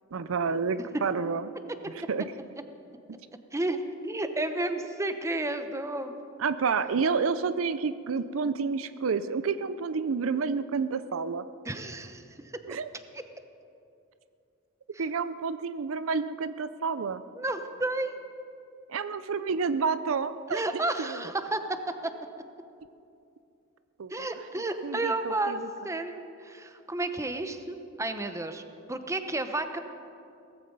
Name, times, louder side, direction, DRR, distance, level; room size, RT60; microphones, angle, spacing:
voice 1, 0.1-1.5 2.0-2.3 6.4-11.4 12.7-12.9 15.0-17.2 18.9-20.6 21.0-21.2 24.0-24.3 24.8-25.7, right 5 dB, 80° right, 13 dB, 0.5 m, -29 dB
voice 2, 4.0-6.1 11.6-12.2 13.1-13.2 14.9-15.0 17.4-18.2 20.5-21.8 24.1-28.6 28.9-29.8, right 2 dB, 15° right, 8 dB, 0.8 m, -31 dB
18.0 x 15.0 x 5.3 m, 2.6 s
head